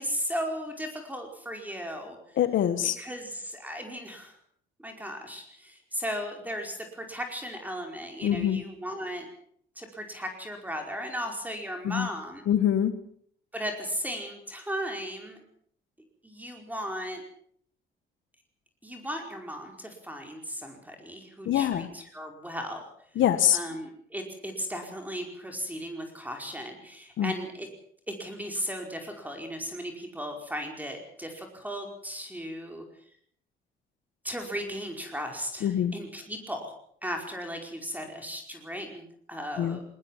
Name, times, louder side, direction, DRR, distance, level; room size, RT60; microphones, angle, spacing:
voice 1, 0.0-2.4 2.8-4.4 4.8-9.3 9.7-12.4 13.5-15.4 16.2-17.2 18.8-22.8 23.5-27.7 28.1-32.8 34.2-36.7 37.0-39.8, equal, 10° right, 3 dB, 5.0 m, -36 dB
voice 2, 2.4-3.0 8.2-8.6 11.8-12.1 12.5-12.9 21.4-21.9 23.2-23.6 27.2-27.3 35.6-35.9 39.6-39.8, left 10 dB, 75° left, 11 dB, 1.6 m, -24 dB
21.0 x 19.0 x 7.4 m, 0.62 s
cardioid pair, 90°, 20 cm